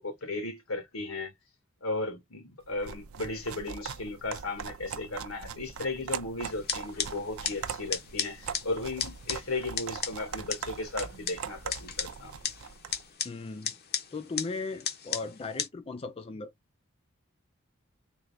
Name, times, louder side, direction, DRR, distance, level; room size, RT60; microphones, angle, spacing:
voice 1, 0.0-1.3 1.8-12.3 13.4-13.5, left 2 dB, 85° left, 1.4 m, -35 dB
sound 1, 2.7-13.0, right 7 dB, 80° right, 0.5 m, -41 dB
sound 2, 6.4-15.7, left 7 dB, 50° left, 0.8 m, -37 dB
voice 2, 13.2-13.7 14.1-16.5, left 3 dB, 30° left, 0.4 m, -37 dB
3.8 x 2.4 x 3.2 m
head